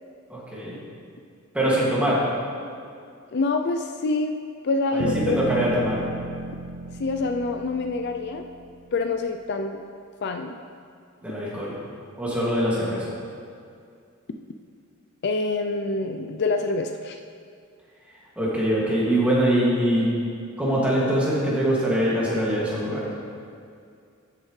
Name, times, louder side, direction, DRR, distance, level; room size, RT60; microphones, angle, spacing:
voice 1, 0.3-0.8 1.5-2.2 4.9-6.0 11.2-11.7 12.2-13.1 18.4-20.1 20.6-23.1, equal, 5° right, -7 dB, 2.2 m, -23 dB
voice 2, 3.3-4.4 4.6-5.5 7.0-8.5 8.9-9.8 10.2-10.6 15.2-17.2, left 3 dB, 50° left, 6 dB, 0.4 m, -26 dB
sound 1, 5.0-9.0, right 2 dB, 55° right, 0.5 m, -33 dB
12.5 x 8.4 x 3.2 m, 2.3 s
head